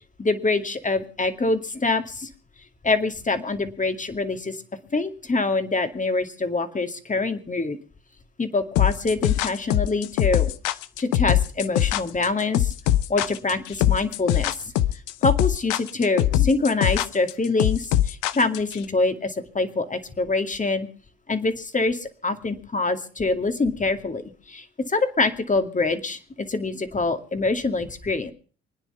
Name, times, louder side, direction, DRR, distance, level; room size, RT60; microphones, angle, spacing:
voice 1, 0.2-2.3 2.8-4.6 4.9-7.8 8.4-10.5 11.0-12.7 13.1-14.5 15.2-20.9 21.3-28.3, left 3 dB, 25° left, 8 dB, 2.3 m, -25 dB
sound 1, 8.8-18.8, left 13 dB, 75° left, 0.8 m, -22 dB
25.0 x 9.9 x 5.7 m, 0.41 s
hypercardioid pair, 55°, 31 cm